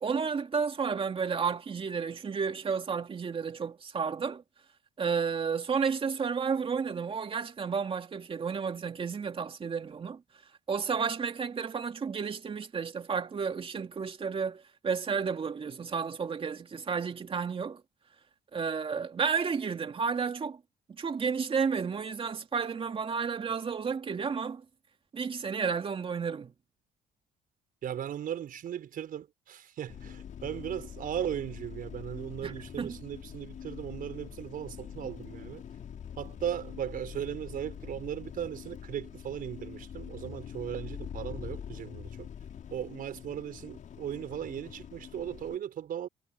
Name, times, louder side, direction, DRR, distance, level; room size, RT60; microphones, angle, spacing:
voice 1, 0.0-4.4 5.0-10.2 10.7-17.8 18.5-20.6 20.9-24.6 25.1-26.5 32.4-33.0, right 6 dB, 30° right, 2.6 m, -32 dB
voice 2, 27.8-35.6 36.2-42.3 42.7-46.1, right 10 dB, 55° right, 5.3 m, -37 dB
sound 1, 29.9-45.6, left 8 dB, 50° left, 4.7 m, -44 dB
cardioid pair, 110°, 17 cm